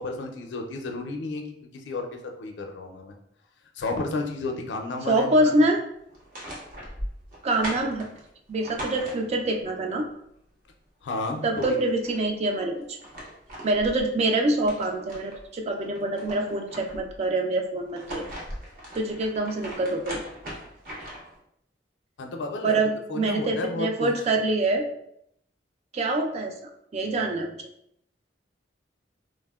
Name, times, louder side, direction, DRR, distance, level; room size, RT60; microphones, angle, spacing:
voice 1, 0.0-2.1 2.4-3.1 3.8-5.6 11.0-11.8 22.2-22.8 23.1-24.1, left 3 dB, 90° left, 3 dB, 0.4 m, -32 dB
voice 2, 5.1-5.8 7.4-8.1 8.5-10.1 11.4-12.8 13.6-18.3 18.9-20.2 22.6-24.8 25.9-26.6 26.9-27.7, right 2 dB, 40° right, 3 dB, 0.3 m, -25 dB
sound 1, 6.1-9.6 11.1-11.2 11.4-12.3 12.8-15.4 15.8-17.2 17.8-21.4, equal, 55° right, 0.7 m, -39 dB
3.2 x 2.0 x 2.2 m, 0.74 s
head